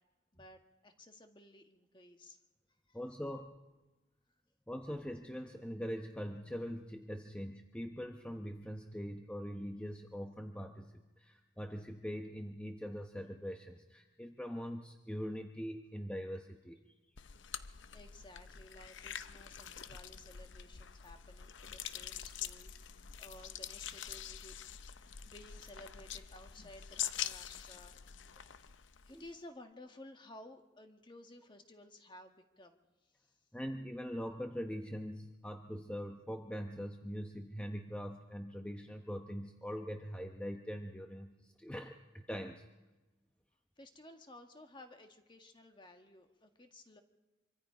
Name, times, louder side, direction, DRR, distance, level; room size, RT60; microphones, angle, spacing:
voice 1, 0.3-2.4 2.9-3.0 17.7-24.6 25.0-28.0 29.0-33.4 43.8-47.0, left 1 dB, 25° left, 5 dB, 1.6 m, -56 dB
voice 2, 2.9-3.5 4.7-16.8 29.1-29.2 33.5-42.6, equal, 5° left, 4 dB, 0.9 m, -42 dB
sound 1, 17.2-29.4, left 9 dB, 65° left, 0.7 m, -45 dB
25.5 x 25.0 x 5.1 m, 1.1 s
head